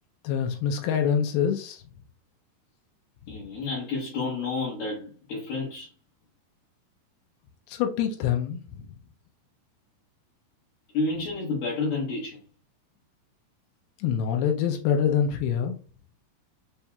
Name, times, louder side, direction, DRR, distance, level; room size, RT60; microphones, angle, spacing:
voice 1, 0.2-1.8 7.7-8.6 14.0-15.8, left 8 dB, 90° left, 2.2 m, -25 dB
voice 2, 3.3-5.9 10.9-12.4, left 3 dB, 65° left, 2.8 m, -30 dB
6.9 x 2.7 x 2.2 m
omnidirectional pair, 5.0 m